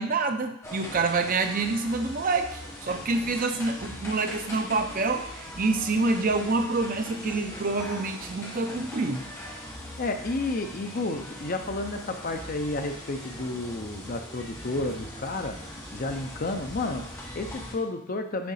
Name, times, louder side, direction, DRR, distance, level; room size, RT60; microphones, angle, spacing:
voice 1, 0.0-9.2, right 3 dB, 40° right, 6 dB, 0.6 m, -27 dB
sound 1, 0.6-17.7, left 1 dB, 15° left, 1.1 m, -41 dB
voice 2, 10.0-18.5, left 2 dB, 40° left, 6 dB, 0.6 m, -31 dB
7.7 x 3.7 x 5.6 m, 0.73 s
head